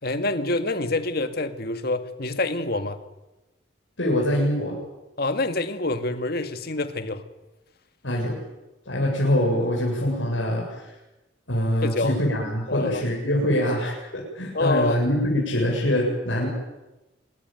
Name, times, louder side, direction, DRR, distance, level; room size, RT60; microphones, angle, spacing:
voice 1, 0.0-3.0 5.2-7.2 11.8-12.1 12.7-13.0 14.5-15.0, left 2 dB, 50° left, 9 dB, 2.0 m, -26 dB
voice 2, 4.0-4.8 8.0-8.4 8.9-10.9 11.5-13.9 14.3-16.5, left 1 dB, 75° left, -3 dB, 7.8 m, -24 dB
26.5 x 22.0 x 9.3 m, 1.0 s
head